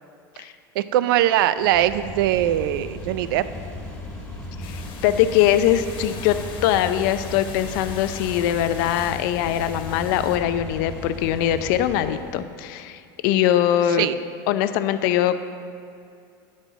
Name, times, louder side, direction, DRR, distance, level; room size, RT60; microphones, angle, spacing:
voice 1, 0.8-3.4 14.0-14.2, right 12 dB, 75° right, 14 dB, 0.4 m, -21 dB
sound 1, 1.6-12.4, left 1 dB, 10° left, 2.4 m, -36 dB
voice 2, 4.6-14.1 14.5-15.5, left 11 dB, 65° left, 11 dB, 0.5 m, -22 dB
sound 2, 4.6-10.4, left 5 dB, 45° left, 1.5 m, -41 dB
10.5 x 4.4 x 7.1 m, 2.4 s
hypercardioid pair, 100°, 12 cm